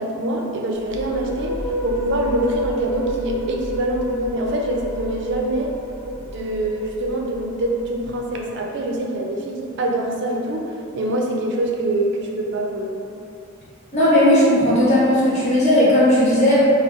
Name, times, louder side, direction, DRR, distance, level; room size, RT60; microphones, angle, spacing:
voice 1, 0.0-1.5 1.8-5.7 6.1-12.9, right 1 dB, 60° right, 0 dB, 0.4 m, -25 dB
sound 1, 0.7-8.4, left 1 dB, 20° right, 0.9 m, -29 dB
voice 2, 13.9-16.6, left 1 dB, 35° left, -9 dB, 1.0 m, -16 dB
3.1 x 2.3 x 3.0 m, 2.5 s
head